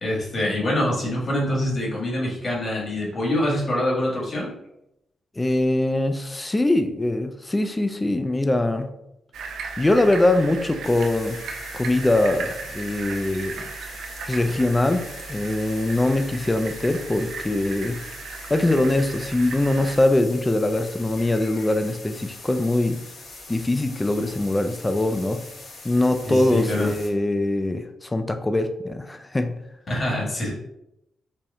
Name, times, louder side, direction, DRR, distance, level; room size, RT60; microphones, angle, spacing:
voice 1, 0.0-4.5 26.2-26.9 29.9-30.5, left 1 dB, 40° left, -4 dB, 1.4 m, -25 dB
voice 2, 5.4-8.9 9.8-11.4 11.7-13.6 14.3-15.0 15.3-18.0 18.5-23.0 23.5-25.4 25.8-29.6, left 2 dB, 15° left, 8 dB, 0.3 m, -22 dB
sound 1, 9.3-20.0, right 4 dB, 80° right, 0.5 m, -37 dB
sound 2, 10.8-27.1, left 2 dB, 65° left, 1.0 m, -42 dB
4.2 x 2.1 x 3.5 m, 0.85 s
cardioid pair, 125°, 0 cm